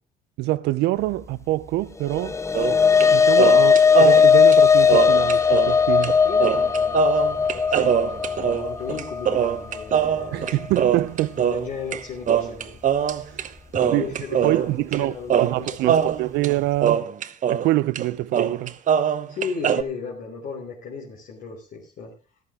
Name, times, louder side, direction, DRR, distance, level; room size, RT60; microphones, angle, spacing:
voice 1, 0.4-2.3 3.1-6.2 10.3-11.4 13.3-13.5 13.9-14.1 14.4-17.1 17.5-18.7, right 17 dB, 90° right, 0.6 m, -25 dB
sound 1, 2.1-10.6, left 6 dB, 15° left, 0.7 m, -18 dB
sound 2, 2.5-3.1 3.4-5.8 6.0-6.1 6.4-12.0 12.3-13.5 13.7-15.0 15.3-17.7 18.0-18.1 18.3-19.8, right 8 dB, 50° right, 1.0 m, -22 dB
voice 2, 6.2-10.6 11.4-12.8 13.0-13.4 13.7-16.1 19.3-22.1, left 5 dB, 60° left, 3.7 m, -36 dB
14.0 x 12.0 x 3.7 m
cardioid pair, 110°, 17 cm